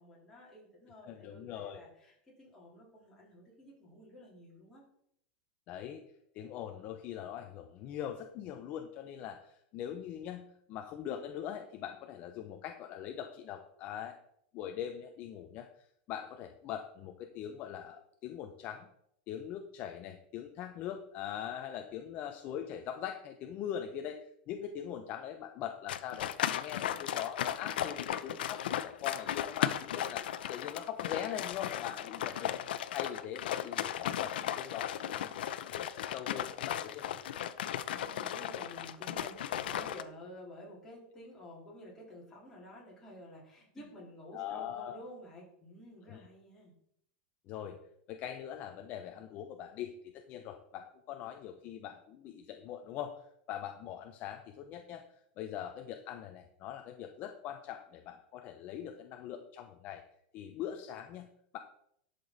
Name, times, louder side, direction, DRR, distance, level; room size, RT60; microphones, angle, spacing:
voice 1, 0.0-4.8 37.9-46.7, equal, 10° left, -6 dB, 4.0 m, -51 dB
voice 2, 1.0-1.8 5.7-6.0 6.3-14.2 14.5-15.7 16.1-18.9 19.3-30.2 30.5-32.5 32.9-35.4 35.7-37.2 44.3-45.0 46.1-46.2 47.5-47.8 48.1-53.1 53.5-55.0 55.4-60.0 60.3-61.6, left 10 dB, 35° left, 6 dB, 0.8 m, -42 dB
sound 1, 25.9-40.0, left 11 dB, 80° left, 0.7 m, -36 dB
11.5 x 6.9 x 4.1 m, 0.71 s
supercardioid pair, 160°, 5 cm